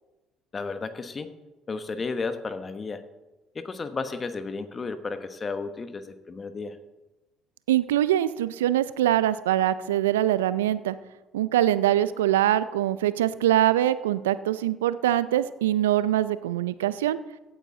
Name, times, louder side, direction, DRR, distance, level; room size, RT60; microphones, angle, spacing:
voice 1, 0.5-1.3 1.7-3.0 3.5-6.8, left 4 dB, 35° left, 10 dB, 1.2 m, -33 dB
voice 2, 7.7-11.0 11.3-17.2, right 12 dB, 85° right, 15 dB, 0.3 m, -23 dB
16.5 x 8.7 x 3.8 m, 1.1 s
hypercardioid pair, 55°, 0 cm